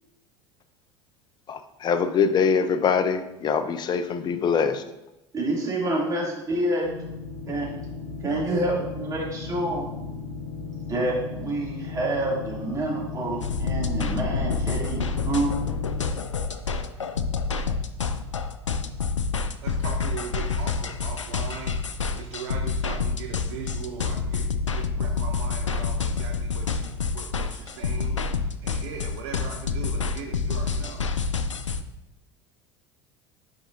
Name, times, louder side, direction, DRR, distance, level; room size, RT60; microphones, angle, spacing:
voice 1, 1.5-4.8, left 6 dB, 30° left, 10 dB, 0.6 m, -23 dB
voice 2, 5.3-6.9 7.5-7.7 8.2-9.9 10.9-15.5, right 1 dB, 20° right, -4 dB, 2.6 m, -27 dB
sound 1, 6.8-16.1, left 4 dB, 65° left, 1.3 m, -36 dB
sound 2, 13.4-31.8, left 4 dB, 80° left, 0.4 m, -28 dB
voice 3, 19.6-31.0, right 5 dB, 60° right, 2 dB, 0.8 m, -39 dB
8.8 x 5.4 x 2.6 m, 0.94 s
figure-of-eight pair, 70°, 16 cm